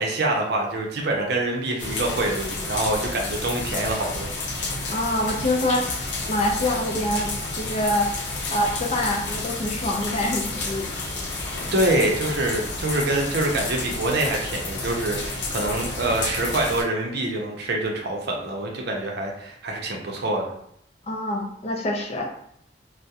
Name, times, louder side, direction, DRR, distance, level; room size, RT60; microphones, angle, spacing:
voice 1, 0.0-4.3 11.7-20.5, right 2 dB, 65° right, 0 dB, 0.5 m, -25 dB
sound 1, 1.8-16.8, left 2 dB, 85° left, 0.6 m, -30 dB
voice 2, 4.9-5.9 6.3-8.1 8.5-10.9 21.1-22.3, left 1 dB, 35° left, 1 dB, 0.4 m, -25 dB
2.3 x 2.0 x 2.7 m, 0.72 s
head